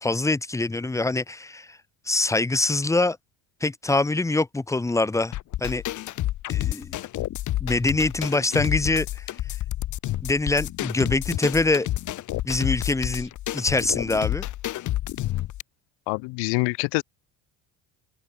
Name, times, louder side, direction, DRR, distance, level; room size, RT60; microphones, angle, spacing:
voice 1, 0.0-1.8 2.1-3.2 3.6-5.3 5.6-5.8 6.5-6.9 7.6-9.2 10.2-11.9 12.5-14.4, left 2 dB, 5° left, 3.8 m, -24 dB
sound 1, 5.3-15.6, left 14 dB, 45° left, 6.4 m, -29 dB
voice 2, 16.1-17.0, left 30 dB, 90° left, 3.3 m, -25 dB
open air
cardioid pair, 175°, 40 cm